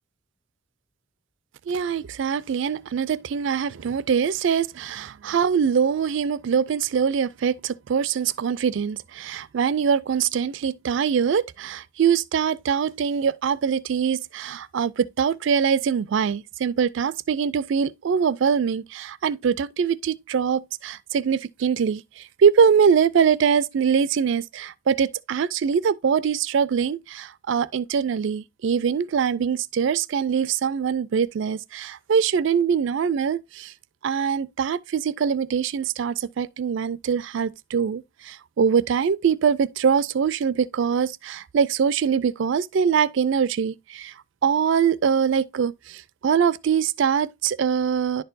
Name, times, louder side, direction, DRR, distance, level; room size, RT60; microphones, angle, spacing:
voice 1, 1.7-33.7 34.0-44.1 44.4-48.2, right 7 dB, 60° right, 0.3 m, -23 dB
10.5 x 4.4 x 2.5 m
head